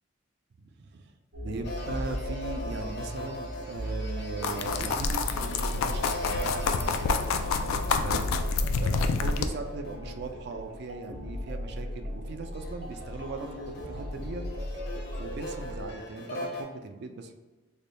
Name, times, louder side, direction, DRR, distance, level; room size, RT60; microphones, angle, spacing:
voice 1, 0.6-1.1 1.4-7.1 8.0-8.3 8.8-14.4 15.2-17.3, right 3 dB, 55° right, 6 dB, 0.3 m, -39 dB
sound 1, 1.3-15.9, equal, 85° right, 1.0 m, -37 dB
sound 2, 1.6-11.3 12.0-16.6, left 1 dB, 50° left, 0.7 m, -41 dB
sound 3, 4.4-9.5, left 4 dB, 90° left, 0.3 m, -28 dB
3.4 x 2.2 x 3.8 m, 1.2 s
head